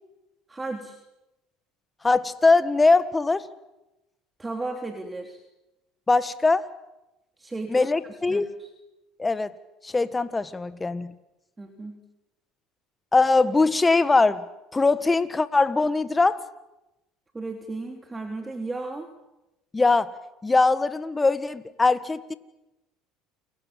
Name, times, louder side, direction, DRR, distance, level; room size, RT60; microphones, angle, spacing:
voice 1, 0.5-1.0 4.4-5.4 7.4-8.7 11.6-12.0 17.3-19.1, right 2 dB, 20° right, 4 dB, 3.4 m, -35 dB
voice 2, 2.0-3.4 6.1-6.7 7.7-8.5 9.2-9.5 9.8-11.1 13.1-14.4 14.7-16.4 19.7-20.1 20.4-22.3, left 3 dB, 20° left, 14 dB, 1.7 m, -21 dB
29.5 x 24.0 x 7.6 m, 0.97 s
hypercardioid pair, 80°, 0 cm